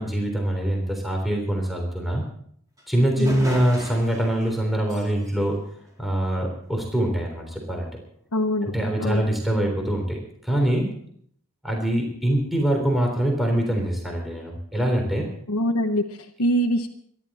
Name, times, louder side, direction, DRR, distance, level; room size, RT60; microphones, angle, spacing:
voice 1, 0.0-2.2 2.9-5.6 6.0-7.9 8.6-11.0 11.6-15.3, right 1 dB, ahead, 1 dB, 3.5 m, -24 dB
sound 1, 2.8-2.9 3.2-6.6, equal, 15° right, 4.0 m, -39 dB
voice 2, 8.3-8.7 9.0-9.3 15.5-16.9, equal, 85° left, 1 dB, 1.2 m, -24 dB
25.5 x 11.5 x 4.3 m, 0.64 s
head